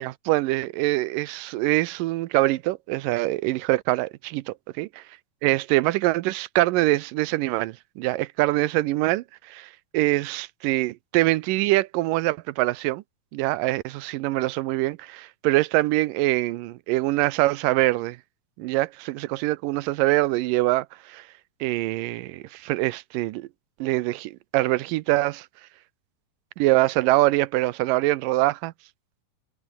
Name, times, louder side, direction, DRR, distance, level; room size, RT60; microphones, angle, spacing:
voice 1, 0.0-4.9 5.4-13.0 13.3-18.2 18.6-21.2 21.6-23.5 23.8-25.5 26.6-28.7, right 18 dB, 80° right, 2.3 m, -24 dB
omnidirectional pair, 3.9 m